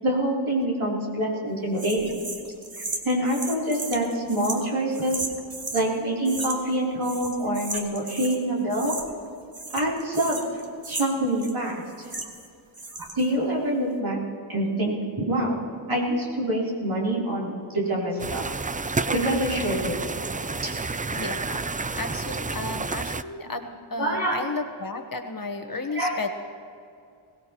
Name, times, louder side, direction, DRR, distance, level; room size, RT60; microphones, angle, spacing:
voice 1, 0.0-2.2 3.0-5.2 5.7-8.9 9.7-10.4 10.8-12.1 13.1-14.2 14.5-15.6 15.9-18.4 19.1-20.0 20.6-20.7 24.0-24.4 25.9-26.2, right 1 dB, 75° right, -5 dB, 3.5 m, -26 dB
sound 1, 1.8-5.9 6.2-6.8 7.0-8.4 8.7-9.3 9.5-12.5 12.7-13.3, right 3 dB, 45° right, 1.6 m, -35 dB
sound 2, 18.2-23.2, right 4 dB, 20° right, 0.3 m, -30 dB
voice 2, 21.1-26.3, left 3 dB, 45° left, 6 dB, 1.1 m, -33 dB
21.5 x 17.5 x 3.0 m, 2.4 s
wide cardioid pair, 55°, 48 cm